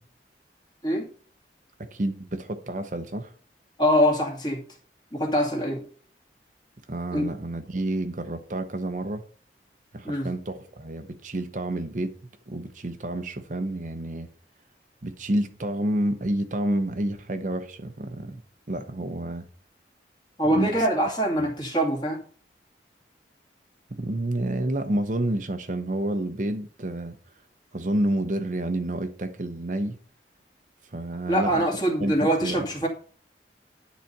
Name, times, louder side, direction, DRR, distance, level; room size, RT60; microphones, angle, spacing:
voice 1, 1.8-3.3 6.9-9.2 9.9-12.1 12.5-14.3 15.0-18.4 18.7-19.5 20.5-20.9 21.4-21.5 23.9-27.2 27.7-30.0 30.8-31.6 32.0-32.7, right 1 dB, 45° right, 0.8 m, -29 dB
voice 2, 3.8-4.6 5.1-5.8 7.1-7.3 10.0-10.3 20.4-22.2 31.3-32.9, equal, 25° left, 2.2 m, -24 dB
10.5 x 4.1 x 6.6 m
head